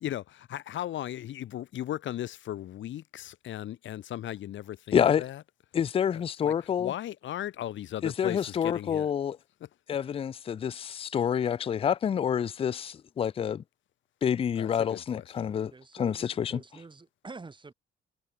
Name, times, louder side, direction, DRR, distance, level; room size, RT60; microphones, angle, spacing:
voice 1, 0.0-5.4 6.4-9.1 9.6-9.7 14.6-15.2, left 12 dB, 70° left, 1.6 m, -37 dB
voice 2, 4.9-5.2 5.7-6.9 8.0-9.4 9.9-13.6 14.2-16.6, left 8 dB, 30° left, 0.3 m, -28 dB
voice 3, 15.7-17.7, right 3 dB, 25° right, 2.0 m, -47 dB
cardioid pair, 90°, 20 cm